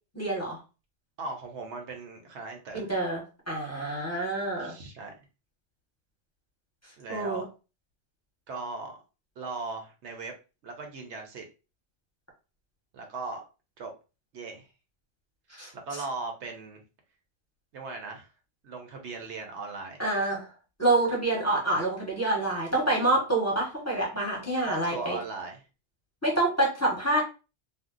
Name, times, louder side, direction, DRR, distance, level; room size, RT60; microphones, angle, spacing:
voice 1, 0.1-0.6 2.7-4.7 7.1-7.4 15.5-15.7 20.0-20.5 20.8-25.2 26.2-27.2, right 2 dB, 15° left, -3 dB, 0.9 m, -27 dB
voice 2, 1.2-2.9 4.6-5.1 7.0-7.5 8.5-9.0 9.4-10.3 10.6-11.4 12.9-13.4 13.8-13.9 14.3-14.7 15.7-16.8 17.7-18.3 18.6-20.0 24.6-25.6, right 3 dB, 70° right, 3 dB, 0.9 m, -38 dB
2.6 x 2.0 x 3.6 m, 0.31 s
omnidirectional pair, 1.2 m